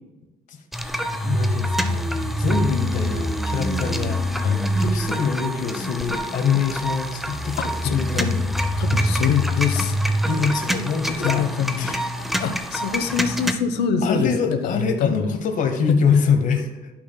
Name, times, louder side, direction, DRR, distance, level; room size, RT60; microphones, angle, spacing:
sound 1, 0.7-13.5, equal, ahead, 0.5 m, -25 dB
voice 1, 1.2-4.2 4.8-7.6 7.8-8.4 10.3-11.5 11.8-12.2 13.0-13.1 14.0-16.9, left 6 dB, 50° left, 5 dB, 1.0 m, -24 dB
voice 2, 4.4-4.7 7.8-8.3 8.8-10.0 11.2-11.9 12.4-15.3, left 7 dB, 80° left, 8 dB, 0.8 m, -24 dB
12.0 x 5.9 x 2.2 m, 1.1 s
cardioid pair, 110°, 17 cm